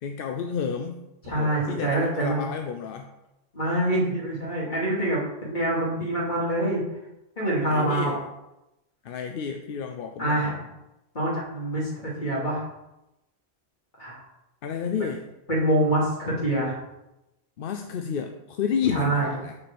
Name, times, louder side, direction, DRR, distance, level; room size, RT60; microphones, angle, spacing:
voice 1, 0.0-3.1 7.7-8.2 9.0-10.4 14.6-15.3 17.6-19.5, left 7 dB, 60° left, 6 dB, 0.7 m, -31 dB
voice 2, 1.3-2.4 3.5-6.8 7.4-8.2 10.2-10.6 11.1-12.6 14.0-14.2 15.5-16.8 18.9-19.3, right 1 dB, 45° left, -5 dB, 2.9 m, -25 dB
6.7 x 4.5 x 6.8 m, 0.93 s
omnidirectional pair, 1.1 m